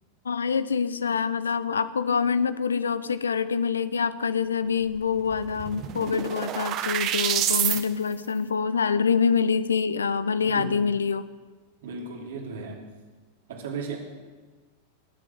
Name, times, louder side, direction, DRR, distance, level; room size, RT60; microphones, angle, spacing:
voice 1, 0.2-11.2, left 6 dB, 70° left, 15 dB, 0.7 m, -25 dB
sound 1, 5.0-5.1 5.3-7.8, right 11 dB, 35° right, 1.2 m, -27 dB
voice 2, 10.4-10.8 11.8-12.8 13.5-14.0, right 4 dB, 60° right, 2 dB, 2.9 m, -35 dB
19.5 x 7.7 x 7.9 m, 1.3 s
figure-of-eight pair, 90°, 0 cm